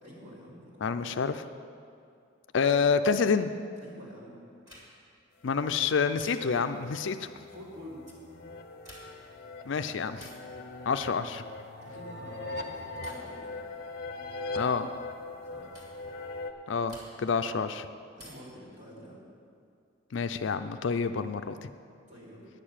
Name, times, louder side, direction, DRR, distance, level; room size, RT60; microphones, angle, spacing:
voice 1, 0.0-1.1 3.8-4.4 7.5-8.0 11.8-13.6 15.4-15.7 18.1-19.2 22.1-22.5, equal, 40° right, -7 dB, 3.5 m, -47 dB
voice 2, 0.8-1.4 2.5-3.5 5.4-7.2 9.7-10.3 10.9-11.4 14.6-14.9 16.7-17.9 20.1-21.7, left 5 dB, 70° left, 10 dB, 0.5 m, -28 dB
sound 1, 4.7-5.2 6.2-6.8 8.7-9.3 10.1-10.5 11.8-12.1 13.0-13.4 14.7-14.9 15.7-16.0 16.9-17.4 18.2-18.6 20.1-20.8, equal, 20° right, 2.9 m, -53 dB
sound 2, 5.5-16.5, left 3 dB, 50° left, 0.8 m, -41 dB
10.0 x 6.7 x 8.9 m, 2.3 s
head